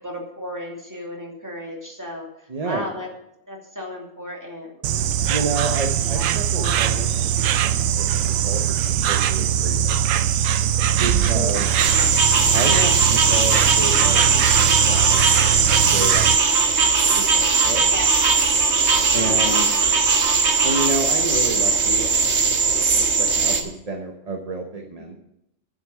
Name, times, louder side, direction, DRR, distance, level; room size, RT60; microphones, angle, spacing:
voice 1, 0.0-2.3 2.6-3.1 3.5-5.2 5.5-5.6 6.0-6.8 11.3-11.7 12.4-12.8 17.8-18.1 18.9-19.5 23.5-23.7 25.0-25.1, left 1 dB, 15° right, -1 dB, 2.5 m, -35 dB
voice 2, 2.5-2.8 5.2-10.2 11.0-11.7 12.5-18.0 19.1-19.7 20.6-22.4 22.6-25.2, right 3 dB, 30° right, 3 dB, 1.0 m, -30 dB
Insect, 4.8-16.4, right 9 dB, 85° right, 1.0 m, -21 dB
sound 1, 11.8-23.6, right 4 dB, 60° right, 1.5 m, -19 dB
9.6 x 8.0 x 7.4 m, 0.81 s
omnidirectional pair, 1.3 m